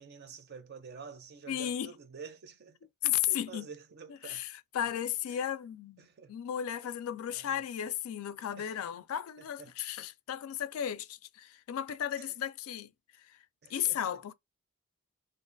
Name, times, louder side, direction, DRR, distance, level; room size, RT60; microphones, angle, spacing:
voice 1, 0.0-4.4 5.3-5.4 6.0-6.3 6.8-6.9 7.3-7.6 8.6-8.8 9.6-9.7 12.1-12.4 13.6-14.2, right 5 dB, 45° right, 0.5 m, -49 dB
voice 2, 1.5-1.9 3.0-3.7 4.2-12.9 13.2-13.4 13.7-14.3, left 10 dB, 70° left, 0.3 m, -34 dB
2.4 x 2.3 x 2.5 m
head